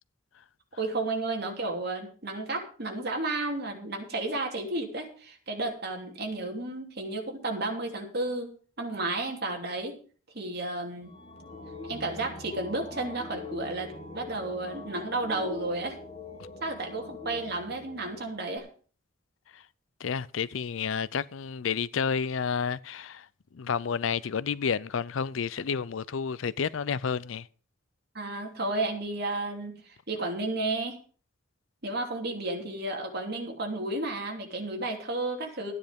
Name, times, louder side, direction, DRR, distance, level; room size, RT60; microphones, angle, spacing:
voice 1, 0.8-8.5 8.8-9.9 10.3-11.2 11.9-16.0 16.6-18.7 28.1-31.0 31.8-35.7, right 2 dB, 55° right, 2.9 m, -32 dB
sound 1, 11.0-18.6, left 3 dB, 30° left, 1.6 m, -43 dB
voice 2, 20.0-23.3 23.5-27.5, left 6 dB, 80° left, 0.5 m, -30 dB
13.0 x 9.8 x 5.2 m
head